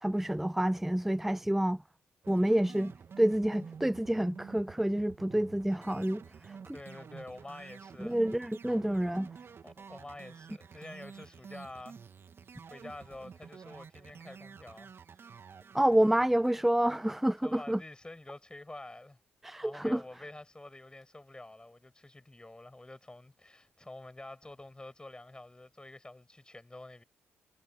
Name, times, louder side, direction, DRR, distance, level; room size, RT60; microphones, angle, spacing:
voice 1, 0.0-1.8 2.3-6.8 8.0-9.3 15.7-17.8 19.4-20.0, right 1 dB, 5° right, 0.4 m, -28 dB
sound 1, 2.2-17.6, right 6 dB, 45° right, 2.8 m, -50 dB
voice 2, 6.7-8.2 9.6-12.0 12.6-14.9 17.4-19.2 19.6-27.0, left 2 dB, 15° left, 6.9 m, -48 dB
hypercardioid pair, 45°, 6 cm